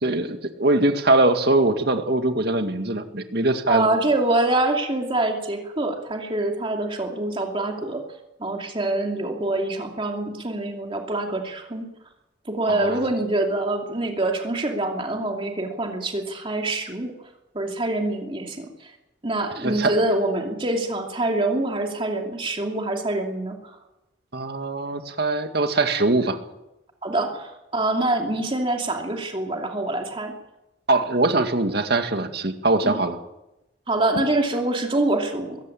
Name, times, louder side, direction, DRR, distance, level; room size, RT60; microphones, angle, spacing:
voice 1, 0.0-3.9 12.7-13.0 19.6-19.9 24.3-26.4 30.9-33.2, right 2 dB, 60° right, 6 dB, 2.1 m, -22 dB
voice 2, 3.7-8.0 8.4-11.9 12.5-17.1 17.5-18.9 19.2-23.8 27.0-30.3 32.8-33.0 33.9-35.6, right 2 dB, 30° right, 2 dB, 2.7 m, -25 dB
22.0 x 15.5 x 8.7 m, 0.92 s
head